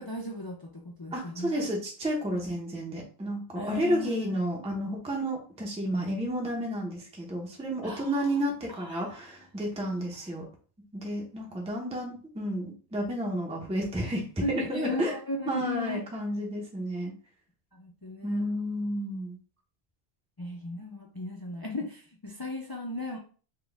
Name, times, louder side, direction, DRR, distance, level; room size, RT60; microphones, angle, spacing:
voice 1, 0.0-1.7 3.5-4.4 7.8-8.3 8.7-9.0 9.8-10.1 14.4-16.0 17.7-18.4 20.4-23.2, left 2 dB, 40° left, 0 dB, 0.3 m, -36 dB
voice 2, 1.1-10.5 10.9-15.1 15.5-17.1 18.2-19.4, equal, 5° right, -1 dB, 0.7 m, -31 dB
4.2 x 2.3 x 3.4 m, 0.40 s
omnidirectional pair, 1.2 m